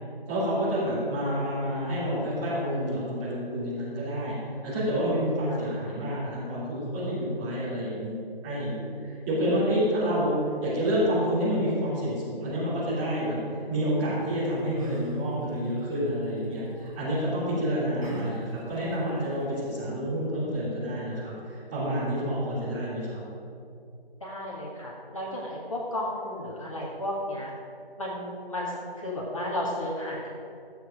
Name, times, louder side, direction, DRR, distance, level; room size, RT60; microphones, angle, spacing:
voice 1, 0.3-4.3 4.6-10.3 10.6-13.4 13.7-23.2, equal, 5° right, -13 dB, 2.2 m, -28 dB
Yell, 14.1-19.7, right 2 dB, 35° right, 2.0 m, -45 dB
voice 2, 24.2-27.5 28.0-30.3, left 1 dB, 35° left, -4 dB, 1.7 m, -33 dB
13.5 x 8.1 x 5.1 m, 2.5 s
figure-of-eight pair, 170°, 31 cm